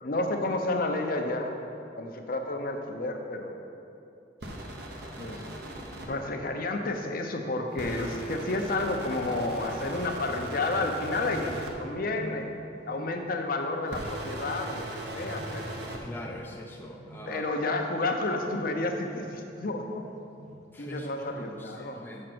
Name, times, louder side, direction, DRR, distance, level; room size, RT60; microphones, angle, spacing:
voice 1, 0.0-1.5 1.9-3.5 5.2-5.5 6.1-12.5 12.9-15.8 17.3-20.1 20.8-22.0, left 2 dB, 50° left, 3 dB, 0.7 m, -31 dB
sound 1, 4.4-6.1 7.8-11.7 13.9-16.0, right 1 dB, 65° right, 1.0 m, -39 dB
sound 2, 11.2-11.7 12.0-12.6 12.9-13.4 13.7-14.2 14.5-15.0 15.3-15.8 16.2-16.5 17.0-17.4 18.4-18.9 19.5-19.9 20.3-20.6 21.2-21.5, equal, 40° right, 0.8 m, -47 dB
voice 2, 16.0-17.4 20.7-22.3, left 1 dB, 10° left, -1 dB, 0.5 m, -42 dB
6.5 x 6.4 x 6.0 m, 2.9 s
head